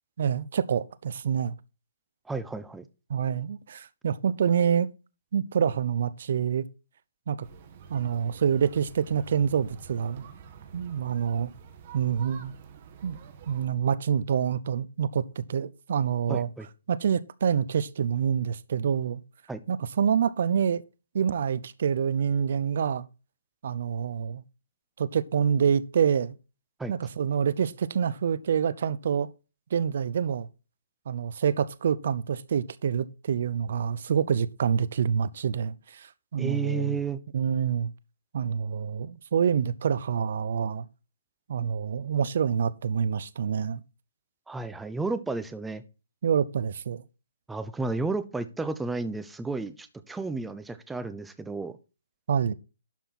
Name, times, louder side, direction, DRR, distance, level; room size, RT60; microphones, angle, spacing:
voice 1, 0.2-1.5 3.1-4.9 5.3-6.6 7.3-7.4 7.9-10.2 10.7-11.5 11.9-12.5 13.0-13.2 13.5-16.5 16.9-19.2 19.7-20.8 21.1-23.1 23.6-24.4 25.0-26.3 26.9-29.3 29.7-30.5 31.1-36.1 36.3-37.0 37.3-37.9 38.3-40.9 41.5-43.8 46.2-47.0 52.3-52.5, right 7 dB, 60° right, 0.7 m, -26 dB
voice 2, 2.3-2.9 16.3-16.7 19.5-19.6 26.8-26.9 36.4-37.2 44.5-45.8 47.5-51.8, right 4 dB, 5° right, 0.7 m, -32 dB
sound 1, 7.4-13.7, right 6 dB, 40° right, 1.7 m, -48 dB
12.0 x 5.7 x 4.3 m
hypercardioid pair, 150°, 0 cm